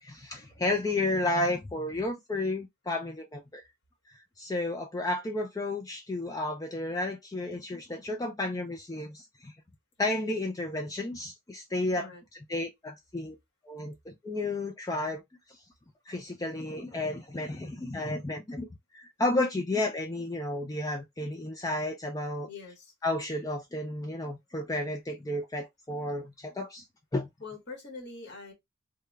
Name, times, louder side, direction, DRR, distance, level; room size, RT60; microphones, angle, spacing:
voice 1, 0.0-3.6 4.4-9.5 10.0-12.1 12.5-13.4 13.6-15.2 15.5-15.6 16.1-18.7 18.9-22.5 23.0-26.8 27.1-27.3, left 2 dB, 20° left, 0.4 m, -32 dB
voice 2, 22.5-22.9 27.4-28.5, left 4 dB, 60° left, 1.6 m, -44 dB
3.5 x 2.2 x 3.3 m
head